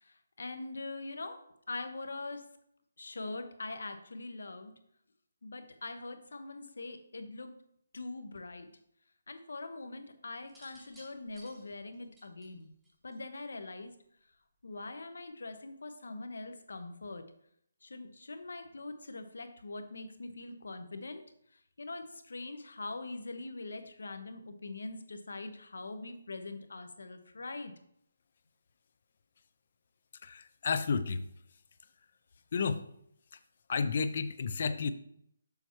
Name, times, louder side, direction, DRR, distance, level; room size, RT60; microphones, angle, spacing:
voice 1, 0.0-1.4 1.7-2.4 3.0-4.7 5.4-7.5 7.9-8.7 9.3-12.7 13.0-13.9 14.6-17.2 17.8-21.2 21.8-27.7, left 2 dB, 70° left, 8 dB, 0.9 m, -43 dB
sound 1, 10.4-13.6 14.7-15.0, equal, ahead, 0.8 m, -58 dB
voice 2, 30.2-31.2 32.5-32.8 33.7-34.9, left 5 dB, 30° left, 12 dB, 0.4 m, -31 dB
6.9 x 5.6 x 3.0 m, 0.72 s
hypercardioid pair, 180°, 0 cm